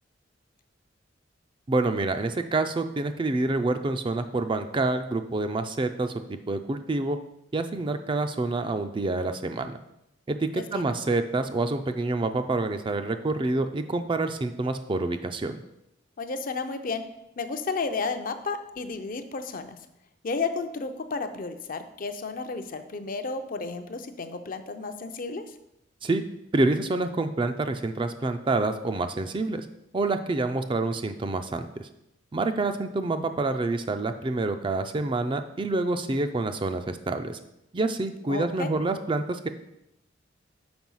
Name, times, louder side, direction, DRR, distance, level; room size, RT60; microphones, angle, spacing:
voice 1, 1.7-7.2 7.5-9.8 10.3-15.6 26.0-26.2 26.5-29.6 29.9-31.9 32.3-37.4 37.7-39.5, right 2 dB, 25° right, 8 dB, 0.4 m, -27 dB
voice 2, 10.5-10.9 16.2-17.0 17.4-19.8 20.2-25.4 38.3-38.7, left 4 dB, 45° left, 8 dB, 0.6 m, -32 dB
6.1 x 4.8 x 5.5 m, 0.83 s
head